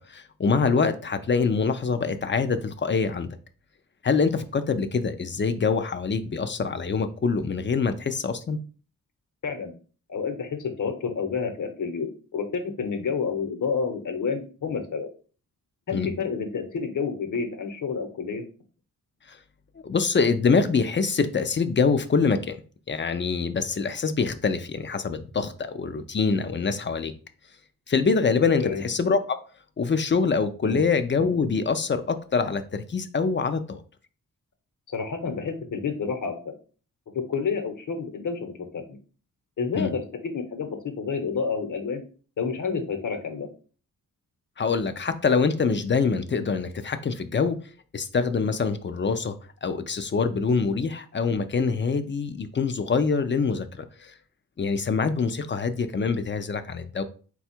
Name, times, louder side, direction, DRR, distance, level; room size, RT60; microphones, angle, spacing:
voice 1, 0.1-3.3 4.0-8.6 15.9-16.1 19.3-19.4 19.8-22.6 22.9-27.1 27.9-29.4 29.8-33.8 39.7-39.9 44.6-47.6 47.9-49.3 49.6-54.1 54.6-57.0, left 5 dB, 35° left, 10 dB, 0.4 m, -25 dB
voice 2, 10.1-15.1 15.9-18.4 28.6-28.8 30.6-30.8 34.9-36.3 37.1-39.0 39.6-42.0 42.4-43.5, left 5 dB, 60° left, 5 dB, 1.0 m, -29 dB
4.3 x 2.3 x 4.3 m, 0.39 s
cardioid pair, 85°, 35 cm